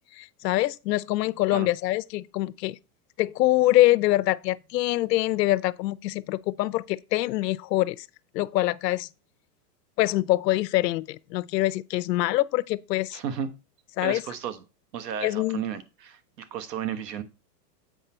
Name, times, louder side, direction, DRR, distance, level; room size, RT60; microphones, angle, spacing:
voice 1, 0.2-2.8 3.2-8.1 8.3-9.1 10.0-13.2 14.0-14.2 15.2-15.6, left 16 dB, 80° left, 0.6 m, -24 dB
voice 2, 13.1-13.5 14.0-14.6 14.9-17.2, right 8 dB, 80° right, 1.3 m, -33 dB
8.1 x 4.9 x 4.3 m
supercardioid pair, 175°, 49 cm